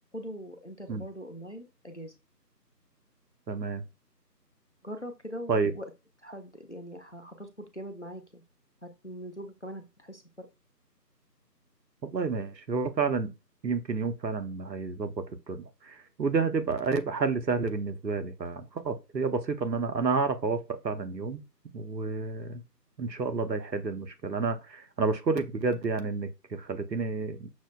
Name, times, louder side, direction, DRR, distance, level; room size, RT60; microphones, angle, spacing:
voice 1, 0.1-2.1 4.8-5.9 6.2-8.4 8.8-10.5, equal, 45° left, 0.5 m, -42 dB
voice 2, 3.5-3.8 5.5-5.7 12.1-13.3 13.6-21.4 21.7-22.6 23.0-27.5, right 4 dB, 85° right, 0.8 m, -30 dB
6.1 x 2.1 x 2.2 m
figure-of-eight pair, 165°, 50 cm